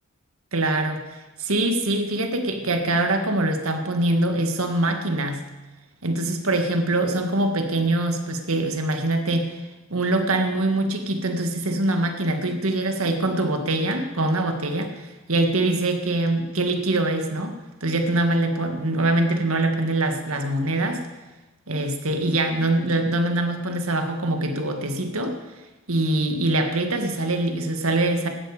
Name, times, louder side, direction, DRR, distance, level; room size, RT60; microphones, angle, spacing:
voice 1, 0.5-5.4 6.0-9.6 9.9-17.5 17.8-21.0 21.7-25.4 25.9-28.3, right 2 dB, 75° right, 5 dB, 1.8 m, -23 dB
17.0 x 12.5 x 5.0 m, 1.1 s
head